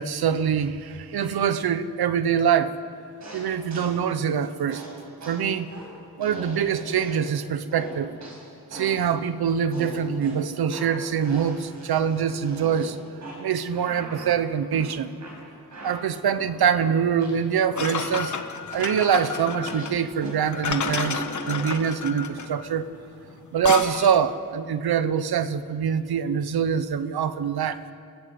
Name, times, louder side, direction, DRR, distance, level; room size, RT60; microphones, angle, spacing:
voice 1, 0.0-2.8 3.3-4.8 5.3-5.7 6.2-8.1 8.7-13.0 13.4-15.1 15.8-18.4 18.7-22.9 23.5-27.8, right 7 dB, 80° right, 12 dB, 1.1 m, -24 dB
sound 1, 3.2-4.1 4.7-7.4 7.7-9.1 9.7-17.4 17.7-18.4 18.7-21.8, right 1 dB, 50° right, 6.1 m, -40 dB
sound 2, 17.8-24.3, left 7 dB, 50° left, 1.3 m, -31 dB
30.0 x 15.0 x 7.8 m, 2.3 s
wide cardioid pair, 170°, 37 cm